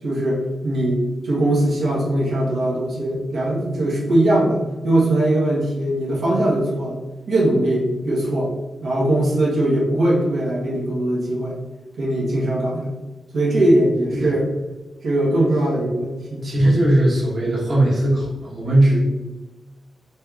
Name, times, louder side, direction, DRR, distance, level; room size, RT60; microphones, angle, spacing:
voice 1, 0.0-7.0 7.3-8.5 8.8-11.6 12.0-12.9 13.3-14.5 15.0-16.5, right 1 dB, 80° right, -5 dB, 1.0 m, -20 dB
voice 2, 16.4-19.0, right 1 dB, 45° right, -4 dB, 1.1 m, -18 dB
4.2 x 3.3 x 2.3 m, 1.2 s
wide cardioid pair, 105°, 0 cm